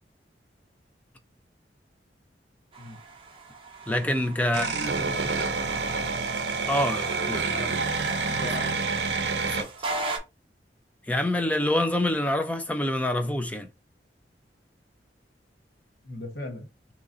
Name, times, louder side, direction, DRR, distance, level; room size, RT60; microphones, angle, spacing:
sound 1, 2.7-10.2, right 2 dB, 30° right, 0.6 m, -39 dB
voice 1, 3.9-4.9 6.7-7.4 9.4-9.7 11.1-13.7, left 1 dB, 10° left, 0.4 m, -26 dB
voice 2, 4.5-6.3 6.6-8.9 16.0-16.7, left 1 dB, 70° left, 1.1 m, -39 dB
sound 2, 4.5-9.6, right 4 dB, 70° right, 0.6 m, -28 dB
2.9 x 2.6 x 3.8 m
head